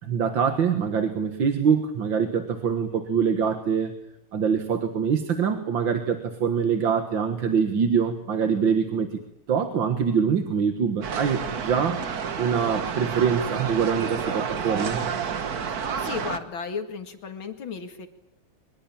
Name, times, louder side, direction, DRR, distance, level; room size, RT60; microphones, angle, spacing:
voice 1, 0.0-3.9 4.3-9.2 9.5-15.0, right 6 dB, 65° right, 8 dB, 2.2 m, -24 dB
sound 1, 11.0-16.4, right 6 dB, 50° right, 1.7 m, -30 dB
voice 2, 16.0-18.1, left 5 dB, 65° left, 8 dB, 3.0 m, -34 dB
24.0 x 21.0 x 8.8 m, 0.78 s
omnidirectional pair, 2.4 m